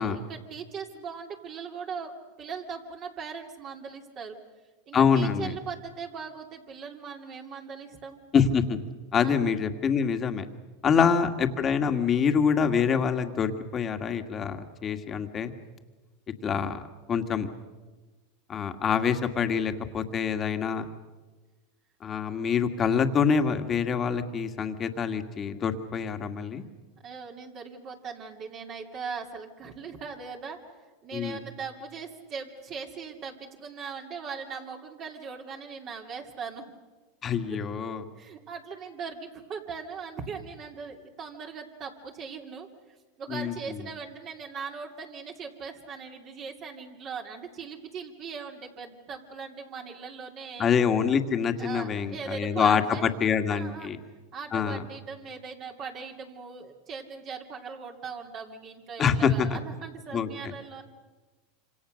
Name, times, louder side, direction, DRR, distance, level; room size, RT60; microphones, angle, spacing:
voice 1, 0.0-2.1 2.4-4.4 4.9-8.2 9.2-9.3 10.9-11.1 27.0-30.6 31.0-36.6 38.2-42.7 43.2-50.7 51.6-53.1 53.5-53.9 54.3-60.9, right 5 dB, 40° right, 1 dB, 2.7 m, -39 dB
voice 2, 4.9-5.5 8.3-8.8 9.1-10.4 10.8-15.5 16.4-16.8 17.1-17.5 18.5-20.8 22.0-26.6 31.1-31.4 37.2-38.0 43.3-43.5 50.6-54.0 54.5-54.8 59.0-59.5 60.1-60.3, left 6 dB, 30° left, 7 dB, 2.0 m, -25 dB
26.5 x 26.0 x 6.5 m, 1.3 s
hypercardioid pair, 115°, 0 cm